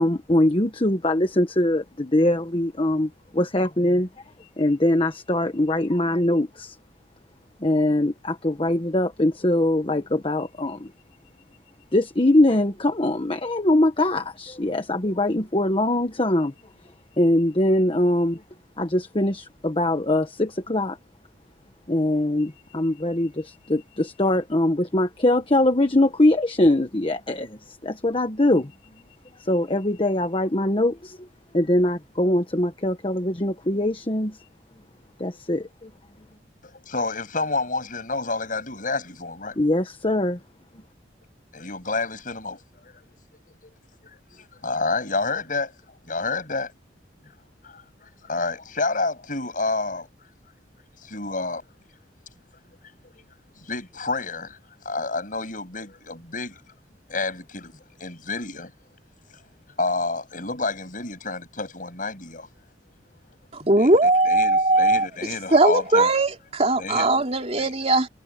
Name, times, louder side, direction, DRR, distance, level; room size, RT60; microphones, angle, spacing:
voice 1, 0.0-4.1 4.4-6.8 7.6-10.9 11.9-16.5 17.2-18.4 18.8-21.0 21.9-28.7 29.4-31.3 31.5-34.4 35.2-35.9 39.6-40.4, left 1 dB, 30° left, 1.2 m, -22 dB
voice 2, 36.6-39.6 41.5-43.7 44.0-45.7 46.0-46.7 47.6-50.1 51.0-51.7 53.0-53.2 53.5-54.6 54.8-56.6 57.1-58.7 59.3-59.4 59.8-62.5 63.8-66.1 66.8-67.1 67.5-67.7, left 3 dB, 50° left, 7.9 m, -29 dB
voice 3, 63.5-65.1 65.5-68.1, right 2 dB, 35° right, 3.5 m, -19 dB
head